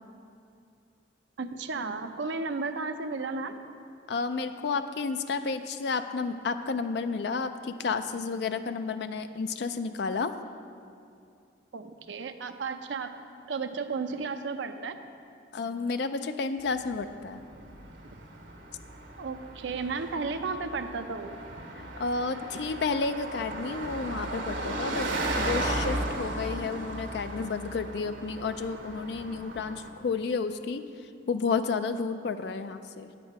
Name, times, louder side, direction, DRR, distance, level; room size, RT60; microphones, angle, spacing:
voice 1, 1.4-3.5 11.7-13.1 13.5-15.0 19.2-21.4, right 4 dB, 70° right, 7 dB, 0.5 m, -33 dB
voice 2, 4.1-10.3 15.5-17.4 21.8-25.1 25.4-30.8 31.3-33.1, left 4 dB, 60° left, 9 dB, 0.4 m, -31 dB
Car passing by, 16.7-29.9, right 1 dB, 90° right, 1.1 m, -36 dB
8.9 x 8.2 x 4.7 m, 2.4 s
head